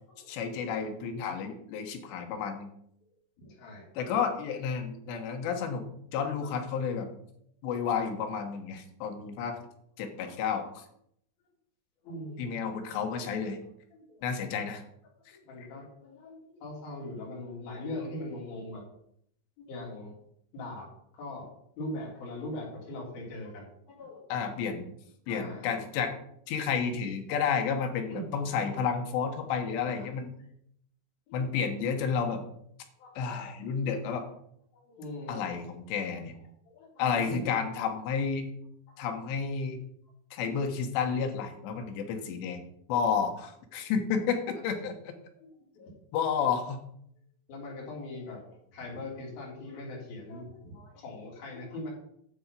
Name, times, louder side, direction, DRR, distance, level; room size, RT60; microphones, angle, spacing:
voice 1, 0.3-2.7 4.0-5.8 6.1-7.1 7.6-9.6 10.0-10.8 12.4-13.6 14.2-14.8 24.3-24.9 25.3-26.1 26.5-30.3 31.3-32.4 33.2-34.3 35.3-36.3 37.0-38.5 39.0-39.8 40.3-42.6 42.9-45.1 46.1-46.8, left 6 dB, 75° left, 5 dB, 3.3 m, -31 dB
voice 2, 3.4-4.1 5.0-5.2 6.4-6.5 10.3-10.5 12.0-12.5 12.8-13.3 13.9-14.2 15.3-18.8 19.6-20.2 20.5-20.9 21.1-21.5 21.8-24.7 25.3-25.7 28.0-28.3 29.9-30.1 31.3-31.7 33.0-33.2 33.9-34.2 34.7-35.4 36.1-36.2 36.6-37.6 38.9-39.0 44.5-44.7 45.4-45.5 45.7-45.9 47.5-51.9, left 1 dB, 55° left, -3 dB, 5.0 m, -41 dB
10.0 x 7.1 x 5.5 m, 0.71 s
omnidirectional pair, 5.4 m